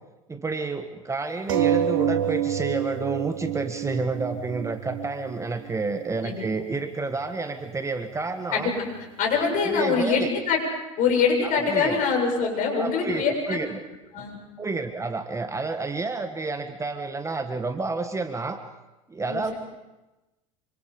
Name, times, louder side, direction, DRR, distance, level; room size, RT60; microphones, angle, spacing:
voice 1, 0.3-8.7 9.6-10.3 11.4-12.0 12.7-13.8 14.6-18.6 19.1-19.5, right 3 dB, 15° right, 7 dB, 1.6 m, -30 dB
sound 1, 1.5-6.5 7.2-7.3 7.6-7.7, right 10 dB, 70° right, 1.4 m, -28 dB
voice 2, 8.5-8.9 9.2-10.6 11.0-13.6 14.1-14.4 19.3-19.6, left 5 dB, 50° left, 2 dB, 7.5 m, -24 dB
27.0 x 25.0 x 5.3 m, 1.0 s
hypercardioid pair, 75°, 18 cm